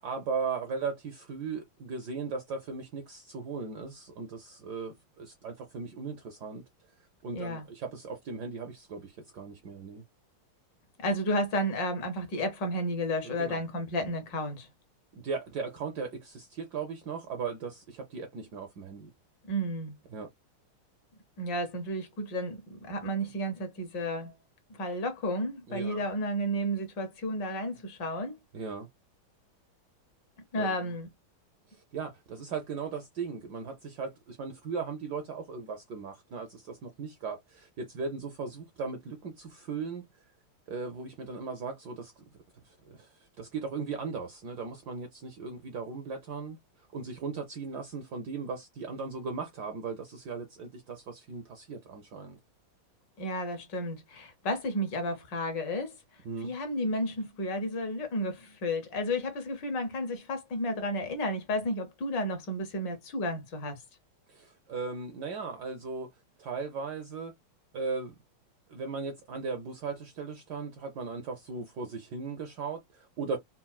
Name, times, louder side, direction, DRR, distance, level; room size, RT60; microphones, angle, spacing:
voice 1, 0.0-6.6 7.2-10.0 13.2-13.6 15.1-19.1 20.1-20.3 25.7-26.0 28.5-28.9 30.6-30.9 31.7-40.1 40.7-42.4 42.6-46.6 46.9-52.4 56.2-56.5 64.3-66.1 66.4-67.3 67.7-68.1 68.7-73.4, right 4 dB, 75° right, 0.9 m, -37 dB
voice 2, 7.3-7.7 11.0-14.7 19.4-20.0 21.4-24.3 24.7-28.3 30.5-31.1 53.2-55.9 56.4-63.8, equal, 65° left, 1.4 m, -32 dB
4.3 x 2.0 x 2.2 m
omnidirectional pair, 2.3 m